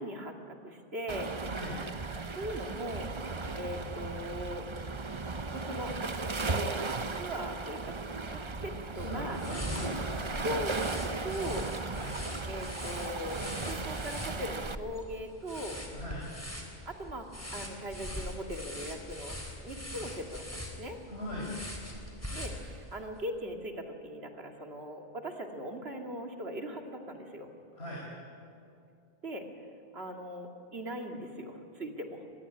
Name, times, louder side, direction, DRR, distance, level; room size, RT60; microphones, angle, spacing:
voice 1, 0.0-1.4 2.4-3.1 3.5-4.7 5.5-5.9 6.4-6.8 7.1-8.0 8.3-9.4 10.4-11.7 12.5-15.8 16.9-19.4 19.6-21.0 22.3-27.5 29.2-29.5 29.9-32.3, equal, 75° right, 3 dB, 2.6 m, -40 dB
Waves surf, 1.1-14.7, right 3 dB, 30° right, 0.8 m, -36 dB
voice 2, 1.5-1.8 8.9-10.3 11.9-12.2 15.9-16.3 21.1-21.5 27.8-28.0, left 1 dB, 80° left, -4 dB, 4.9 m, -40 dB
sound 1, 9.3-23.0, left 1 dB, 15° left, 3.6 m, -42 dB
24.0 x 21.0 x 9.8 m, 2.5 s
omnidirectional pair, 1.1 m